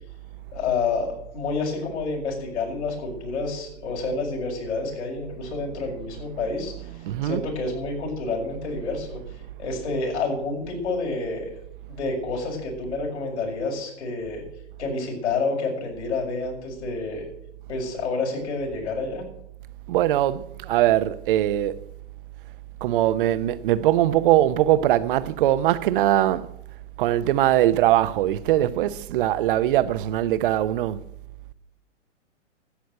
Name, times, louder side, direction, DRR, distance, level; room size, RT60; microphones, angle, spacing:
voice 1, 0.5-1.1 1.3-6.9 7.2-9.2 9.6-11.5 11.9-14.4 14.8-17.2 17.7-19.2, left 3 dB, 65° left, 6.7 m, -29 dB
voice 2, 6.7-7.5 19.9-21.8 22.8-26.5 27.0-31.0, right 13 dB, 45° right, 0.8 m, -21 dB
13.0 x 9.1 x 7.6 m
hypercardioid pair, 125°, 37 cm